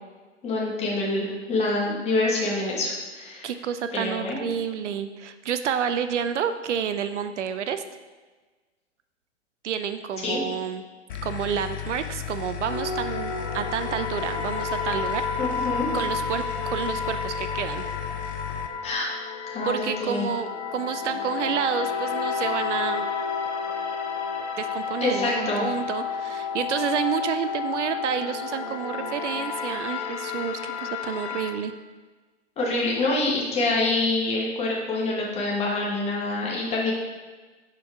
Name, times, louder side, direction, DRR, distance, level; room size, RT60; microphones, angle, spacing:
voice 1, 0.4-3.5 3.9-4.5 10.2-10.4 15.4-15.9 18.8-19.1 19.5-20.3 25.0-25.6 32.6-36.9, left 2 dB, 15° left, -3 dB, 1.1 m, -26 dB
voice 2, 3.4-7.8 9.6-10.8 11.2-15.3 15.9-17.8 19.7-23.1 24.6-31.7, right 8 dB, 70° right, 10 dB, 0.5 m, -29 dB
sound 1, 11.1-18.7, left 10 dB, 45° left, 0.5 m, -35 dB
sound 2, 12.7-31.5, left 5 dB, 65° left, 1.0 m, -31 dB
6.0 x 4.5 x 3.6 m, 1.3 s
hypercardioid pair, 125°, 37 cm